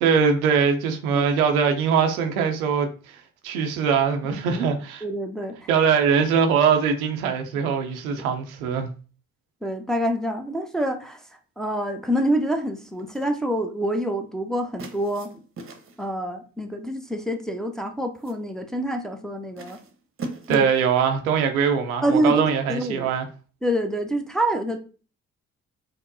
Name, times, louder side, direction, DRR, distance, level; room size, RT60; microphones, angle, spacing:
voice 1, 0.0-5.0 5.7-8.9 20.5-23.3, right 6 dB, 85° right, 0.5 m, -22 dB
voice 2, 5.0-5.7 7.5-7.7 9.6-11.2 11.6-15.3 16.0-19.8 20.5-20.7 22.0-23.1 23.6-24.8, right 1 dB, ahead, 0.6 m, -26 dB
sound 1, 13.0-13.4 14.8-16.1 17.2-17.5 17.9-18.5 19.6-20.9, right 3 dB, 30° right, 0.8 m, -40 dB
5.1 x 2.0 x 2.6 m
hypercardioid pair, 40°, 41 cm